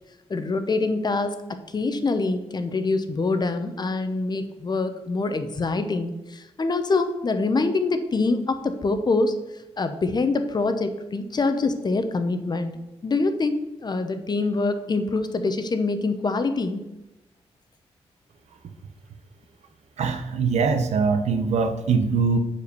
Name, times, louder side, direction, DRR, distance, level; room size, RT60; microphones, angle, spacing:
voice 1, 0.3-1.4 1.7-9.3 9.8-12.7 13.0-16.8, left 3 dB, 40° left, 8 dB, 0.9 m, -25 dB
voice 2, 20.0-22.4, right 5 dB, 85° right, 8 dB, 0.8 m, -22 dB
7.0 x 4.9 x 6.8 m, 0.96 s
cardioid pair, 85°, 11 cm